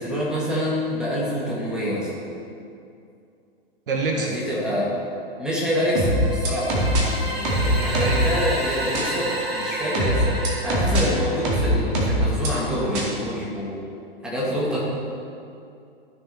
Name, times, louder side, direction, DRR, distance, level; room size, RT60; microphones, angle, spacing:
voice 1, 0.0-2.1 4.1-4.9 5.4-6.8 7.2-13.8 14.2-14.8, equal, 5° right, -7 dB, 2.5 m, -26 dB
voice 2, 3.9-4.3 7.7-8.3, right 3 dB, 60° right, 1 dB, 1.1 m, -26 dB
sound 1, 6.0-7.0 7.5-8.3 9.0-9.1 10.0-11.0 11.5-12.5 13.0-13.1, right 1 dB, 45° right, 2.2 m, -21 dB
sound 2, 6.1-12.0, right 1 dB, 75° right, 1.3 m, -31 dB
13.5 x 6.6 x 3.4 m, 2.5 s
figure-of-eight pair, 100°, 30 cm